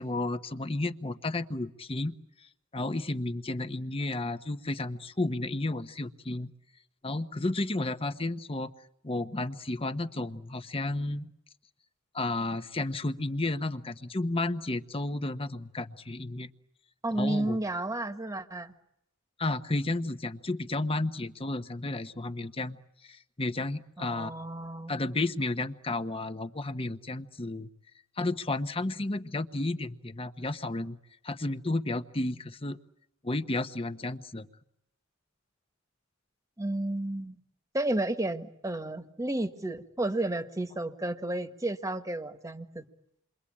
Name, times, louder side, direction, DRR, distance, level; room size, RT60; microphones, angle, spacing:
voice 1, 0.0-2.2 2.7-6.5 7.0-8.7 9.0-11.3 12.1-16.5 17.1-17.6 19.4-22.8 23.0-24.3 24.9-27.7 28.2-31.0 31.2-32.8 33.2-34.5, left 2 dB, 25° left, 11 dB, 1.1 m, -32 dB
voice 2, 17.0-18.7 24.0-24.9 36.6-37.4 37.7-42.8, right 1 dB, 15° right, 9 dB, 1.5 m, -32 dB
28.5 x 23.5 x 8.7 m, 0.79 s
head